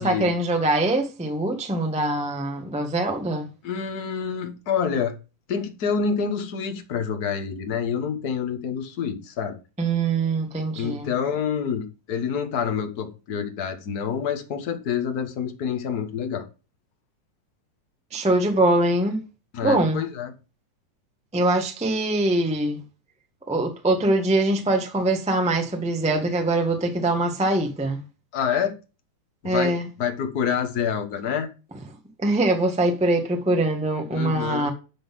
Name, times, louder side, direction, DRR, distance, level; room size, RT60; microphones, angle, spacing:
voice 1, 0.0-3.5 9.8-11.1 18.1-19.2 19.6-20.0 21.3-22.8 23.5-28.0 29.4-29.9 32.2-34.7, right 2 dB, 5° right, 0.5 m, -23 dB
voice 2, 3.6-5.1 5.5-9.6 10.8-16.5 19.5-20.3 28.3-28.7 29.4-31.5 34.1-34.7, left 7 dB, 50° left, 1.1 m, -27 dB
11.5 x 4.0 x 7.4 m
omnidirectional pair, 3.6 m